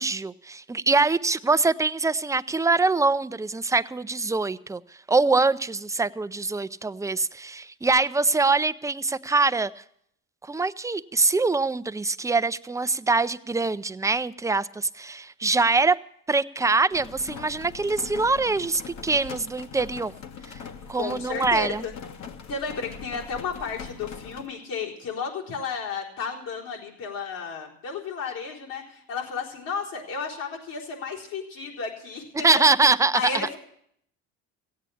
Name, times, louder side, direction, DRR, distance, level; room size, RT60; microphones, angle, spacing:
voice 1, 0.0-4.8 5.1-9.7 10.4-16.0 16.3-20.1 20.5-20.6 20.9-21.8 32.4-33.2, right 3 dB, 10° right, 13 dB, 0.5 m, -24 dB
sound 1, 16.9-24.5, left 6 dB, 50° left, 1.4 m, -41 dB
voice 2, 20.9-21.9 22.5-32.6 33.1-33.6, left 5 dB, 75° left, -2 dB, 4.0 m, -33 dB
16.0 x 8.6 x 8.5 m, 0.70 s
supercardioid pair, 75°, 35 cm